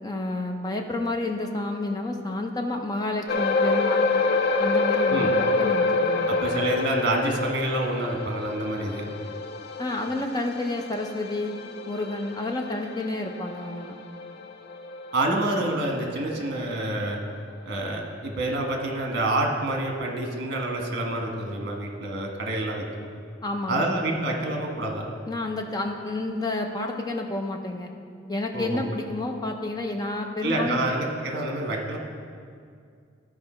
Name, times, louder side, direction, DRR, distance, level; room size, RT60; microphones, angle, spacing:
voice 1, 0.0-4.1 4.6-6.4 9.8-11.5 11.9-14.0 23.4-23.9 25.3-27.9 28.3-30.8, left 2 dB, 20° left, 3 dB, 0.7 m, -30 dB
sound 1, 3.3-16.0 16.3-16.5 17.0-17.1, left 3 dB, 55° left, 0.5 m, -27 dB
voice 2, 6.3-9.1 15.1-17.2 17.6-23.1 23.7-25.1 28.5-28.8 30.4-32.0, right 2 dB, 55° right, 1 dB, 1.4 m, -27 dB
13.5 x 4.9 x 4.4 m, 2.2 s
head